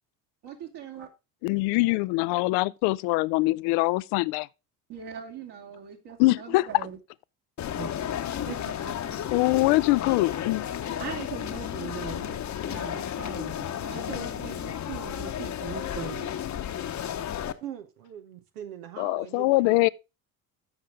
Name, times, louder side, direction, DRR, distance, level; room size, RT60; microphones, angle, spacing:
voice 1, 0.4-1.1 4.9-7.0 7.8-7.9 8.5-9.2 11.0-12.4 12.7-16.3, right 7 dB, 60° right, 2.7 m, -40 dB
voice 2, 1.4-4.5 6.2-6.7 9.3-10.6 19.0-19.9, left 22 dB, 65° left, 0.5 m, -23 dB
sound 1, 7.6-17.5, left 10 dB, 40° left, 1.0 m, -33 dB
voice 3, 17.6-19.9, right 9 dB, 80° right, 1.0 m, -41 dB
14.0 x 5.5 x 3.5 m
hypercardioid pair, 65°, 45 cm